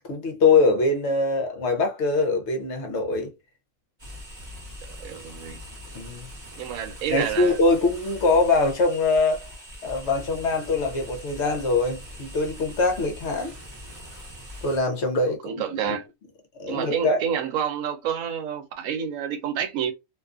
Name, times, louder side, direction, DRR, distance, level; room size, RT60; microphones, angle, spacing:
voice 1, 0.1-3.3 5.9-6.3 7.1-9.5 9.8-13.5 14.6-16.0 16.6-17.2, left 3 dB, 65° left, 0.9 m, -23 dB
sound 1, 4.0-14.8, left 1 dB, 20° right, 1.0 m, -42 dB
voice 2, 4.8-5.6 6.6-7.6 15.4-16.1 16.6-19.9, right 8 dB, 80° right, 1.0 m, -29 dB
2.5 x 2.3 x 2.3 m
omnidirectional pair, 1.4 m